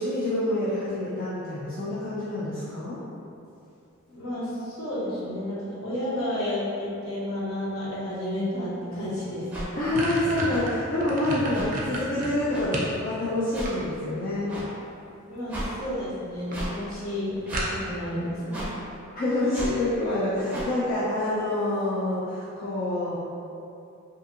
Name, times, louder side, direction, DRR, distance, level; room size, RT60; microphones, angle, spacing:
voice 1, 0.0-3.0 9.8-14.6 19.1-23.2, left 1 dB, 40° left, -9 dB, 0.3 m, -27 dB
voice 2, 4.1-9.4 9.7-9.8 15.3-18.7, left 1 dB, 65° left, -9 dB, 0.9 m, -31 dB
sound 1, 9.1-9.2 9.5-13.0 13.4-14.2 15.3-15.7 16.1-16.2 16.5-16.6 16.9-17.0 17.5-18.1, right 2 dB, 40° right, 0.4 m, -32 dB
sound 2, 9.5-9.7 10.5-10.6 11.5-11.7 12.5-12.6 13.5-13.7 14.5-14.7 15.5-15.7 16.5-16.7 17.5-17.7 18.5-18.7 19.5-19.7 20.5-20.7, equal, 10° right, 0.7 m, -33 dB
2.7 x 2.6 x 2.4 m, 2.7 s
head